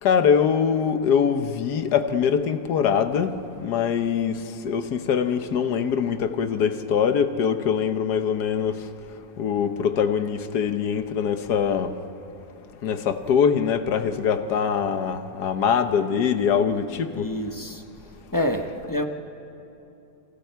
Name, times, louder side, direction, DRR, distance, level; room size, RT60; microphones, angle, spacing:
voice 1, 0.0-3.3 3.6-8.8 9.4-11.9 12.8-17.3 18.4-18.5, left 7 dB, 85° left, 9 dB, 1.6 m, -23 dB
voice 2, 17.2-17.8 18.3-19.0, left 1 dB, 15° left, 5 dB, 0.9 m, -27 dB
28.5 x 27.0 x 4.6 m, 2.8 s
omnidirectional pair, 1.7 m